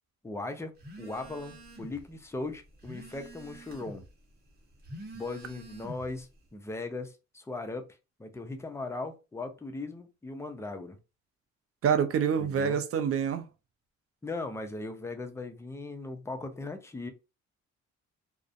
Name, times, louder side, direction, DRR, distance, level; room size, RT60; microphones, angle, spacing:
voice 1, 0.2-4.1 5.1-7.9 8.2-11.0 12.4-12.8 14.2-17.1, left 3 dB, 10° left, 0.4 m, -38 dB
Telephone, 0.8-2.1 2.4-4.1 4.7-6.2, equal, 35° right, 0.9 m, -46 dB
voice 2, 11.8-13.5, right 7 dB, 50° right, 0.5 m, -26 dB
2.4 x 2.1 x 2.5 m
cardioid pair, 90°, 30 cm